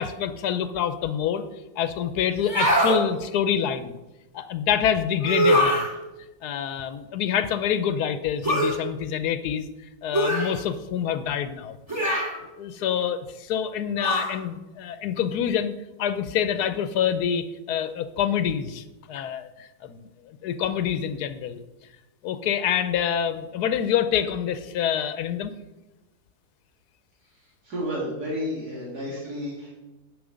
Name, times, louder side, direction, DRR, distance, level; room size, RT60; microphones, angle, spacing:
voice 1, 0.0-1.4 1.8-4.0 4.3-5.8 6.4-9.6 10.0-11.8 12.1-12.3 12.6-15.7 16.0-21.6 22.2-25.5, left 9 dB, 85° left, 11 dB, 1.2 m, -26 dB
sound 1, 2.4-3.0 5.2-5.9 8.4-8.8 10.1-10.5 11.9-12.4 14.0-14.3, equal, 10° right, 2.7 m, -22 dB
voice 2, 27.6-29.7, equal, 80° right, -5 dB, 2.7 m, -31 dB
10.5 x 6.7 x 5.0 m, 1.0 s
omnidirectional pair, 1.7 m